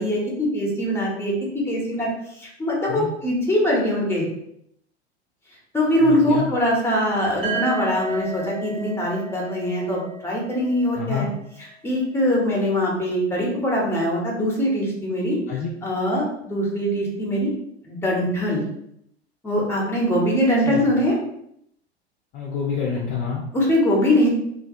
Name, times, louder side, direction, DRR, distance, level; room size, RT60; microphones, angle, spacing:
voice 1, 0.0-4.2 5.7-11.3 11.8-15.4 15.8-17.5 17.8-18.6 19.4-21.1 23.5-24.3, equal, 5° left, -3 dB, 0.8 m, -22 dB
voice 2, 6.0-6.5 6.9-7.0 11.0-11.3 15.5-15.7 20.7-20.9 22.3-23.4, left 6 dB, 30° left, -3 dB, 0.5 m, -28 dB
sound 1, 7.4-11.3, right 3 dB, 60° right, 1.0 m, -33 dB
2.4 x 2.1 x 2.7 m, 0.74 s
figure-of-eight pair, 85°, 33 cm